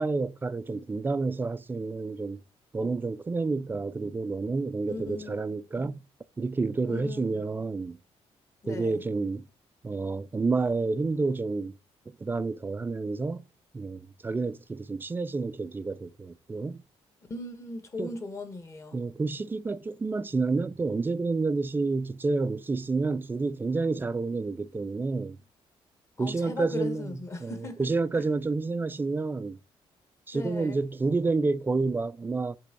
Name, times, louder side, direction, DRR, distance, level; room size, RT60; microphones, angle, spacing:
voice 1, 0.0-2.4 2.7-6.0 6.4-8.0 8.7-9.5 9.8-11.8 12.1-13.4 13.7-16.8 18.0-18.1 18.9-25.4 26.2-29.6 30.3-32.6, right 3 dB, 20° right, 0.4 m, -29 dB
voice 2, 4.9-5.4 6.9-7.3 8.6-9.0 17.2-19.0 26.2-28.2 30.3-30.8, left 3 dB, 25° left, 1.6 m, -38 dB
8.4 x 3.5 x 6.2 m
cardioid pair, 140°, 11 cm